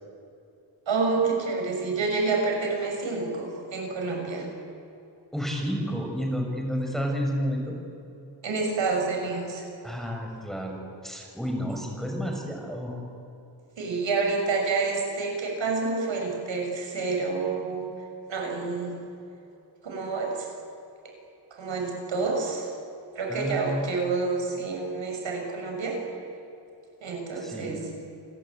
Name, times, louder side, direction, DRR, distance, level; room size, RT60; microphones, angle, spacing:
voice 1, 0.9-4.5 8.4-9.6 13.8-17.9 18.3-18.9 19.8-20.5 21.5-22.7 23.2-26.0 27.0-27.8, right 4 dB, 85° right, 1 dB, 7.0 m, -28 dB
voice 2, 5.3-7.7 9.8-13.0 23.3-23.8 27.4-27.8, equal, ahead, 1 dB, 5.6 m, -31 dB
28.5 x 21.5 x 8.9 m, 2.8 s
wide cardioid pair, 135°, 44 cm